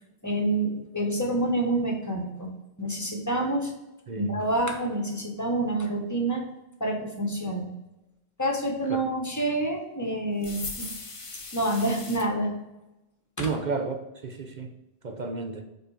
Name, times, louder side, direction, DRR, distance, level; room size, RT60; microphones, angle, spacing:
voice 1, 0.2-2.5 2.8-3.7 4.1-6.4 6.8-7.7 8.4-10.9 11.5-12.5 13.4-13.5, right 1 dB, 15° left, 0 dB, 1.2 m, -27 dB
voice 2, 4.1-4.4 13.4-14.7 15.0-15.6, right 4 dB, 50° right, 4 dB, 0.7 m, -32 dB
sound 1, 10.4-12.3, left 3 dB, 35° left, 0.8 m, -38 dB
5.4 x 4.2 x 4.9 m, 0.94 s
omnidirectional pair, 1.1 m